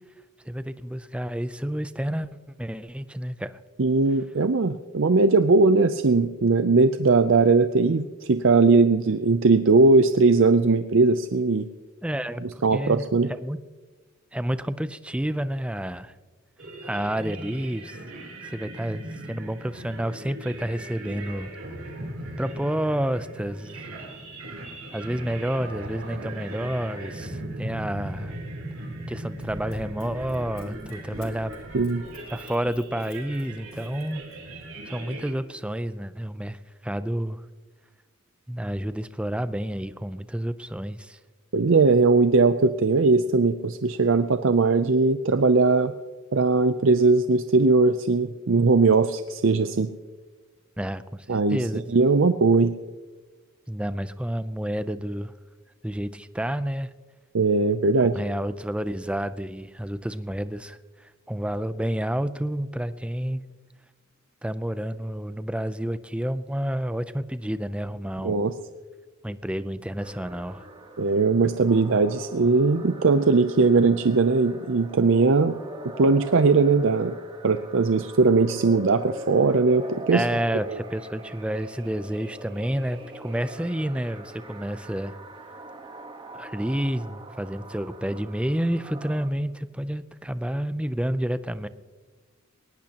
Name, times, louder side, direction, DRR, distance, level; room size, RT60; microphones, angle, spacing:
voice 1, 0.5-3.6 12.0-13.0 13.3-13.6 14.3-16.1 16.8-18.0 18.4-21.5 22.4-23.8 24.9-28.3 29.1-31.6 32.3-34.2 34.9-37.4 38.5-41.2 50.8-51.8 53.7-55.3 55.8-56.9 58.1-63.4 64.4-68.4 69.2-70.6 80.1-85.2 86.3-91.7, right 1 dB, 5° right, 13 dB, 0.5 m, -30 dB
voice 2, 3.8-11.7 12.6-13.3 31.7-32.0 41.5-45.9 46.3-49.9 51.3-51.6 51.9-52.7 57.3-58.1 68.2-68.5 71.0-75.6 76.0-77.1 77.4-80.2 80.7-80.8, right 3 dB, 65° right, 10 dB, 0.6 m, -20 dB
sound 1, 16.6-35.3, right 1 dB, 80° right, 3.4 m, -39 dB
Run, 29.3-34.6 35.2-35.3, left 1 dB, 70° left, 3.4 m, -47 dB
sound 2, 70.0-89.3, right 1 dB, 25° right, 1.3 m, -42 dB
20.5 x 19.0 x 2.9 m, 1.3 s
head